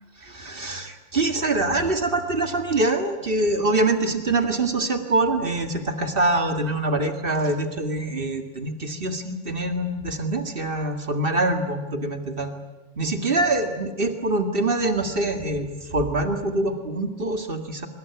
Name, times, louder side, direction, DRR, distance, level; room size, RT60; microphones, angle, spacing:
voice 1, 0.2-12.5 13.0-17.9, right 2 dB, 30° right, 6 dB, 0.9 m, -24 dB
25.5 x 21.5 x 9.4 m, 1.1 s
omnidirectional pair, 4.4 m